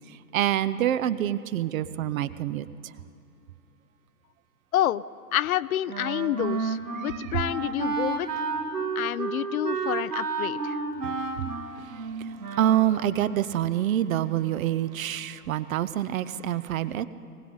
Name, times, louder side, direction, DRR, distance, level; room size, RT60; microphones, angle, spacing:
voice 1, 0.3-2.7 7.0-7.3 11.0-11.1 12.6-17.1, right 12 dB, 60° right, 15 dB, 0.7 m, -26 dB
voice 2, 4.7-5.0 5.3-8.3 9.0-10.8, left 12 dB, 65° left, 18 dB, 0.5 m, -28 dB
Wind instrument woodwind instrument, 5.9-13.0, right 4 dB, 85° right, 1.7 m, -31 dB
20.0 x 17.5 x 3.9 m, 2.6 s
hypercardioid pair, 110°, 46 cm